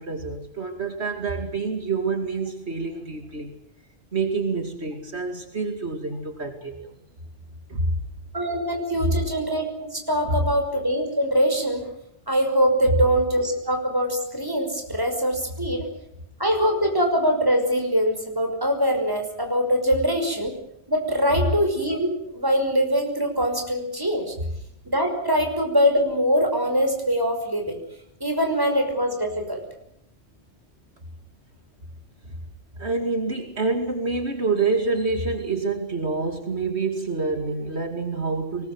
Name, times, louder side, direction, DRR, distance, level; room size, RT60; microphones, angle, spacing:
voice 1, 0.0-3.5 4.1-6.9 7.7-7.9 9.0-9.1 12.8-12.9 32.3-32.4 32.8-38.7, right 3 dB, 70° right, 5 dB, 2.8 m, -27 dB
voice 2, 8.3-11.8 12.3-15.9 16.4-20.5 20.9-24.3 24.9-27.8 28.2-29.6, equal, 20° right, 3 dB, 5.7 m, -23 dB
24.5 x 20.0 x 7.9 m, 0.77 s
omnidirectional pair, 1.1 m